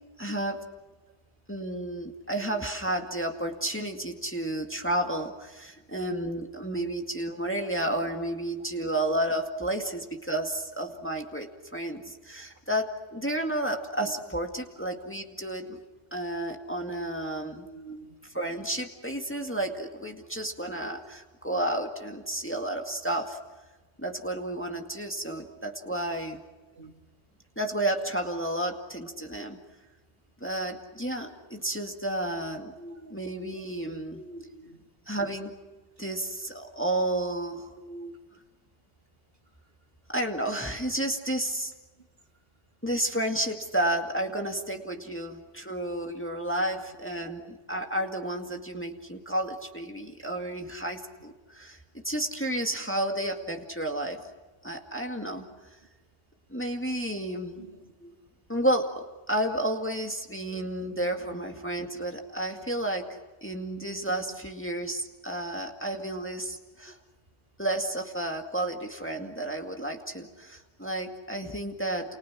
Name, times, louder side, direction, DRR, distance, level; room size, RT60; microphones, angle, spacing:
voice 1, 0.2-0.6 1.5-15.8 16.1-17.7 18.3-23.4 24.0-26.4 27.6-29.6 30.4-32.7 33.1-34.2 35.1-35.5 36.0-37.7 40.1-41.7 42.8-51.8 52.0-54.2 54.6-55.5 56.5-57.7 58.5-63.1 63.4-67.0 67.6-72.2, right 1 dB, 10° left, 3 dB, 2.1 m, -31 dB
voice 2, 17.7-18.1 25.2-25.3 26.8-26.9 32.8-33.1 34.1-34.7 37.8-38.1 58.0-58.1 61.3-61.5, right 2 dB, 55° right, 3 dB, 2.8 m, -44 dB
29.5 x 29.5 x 6.3 m, 1.2 s
omnidirectional pair, 1.2 m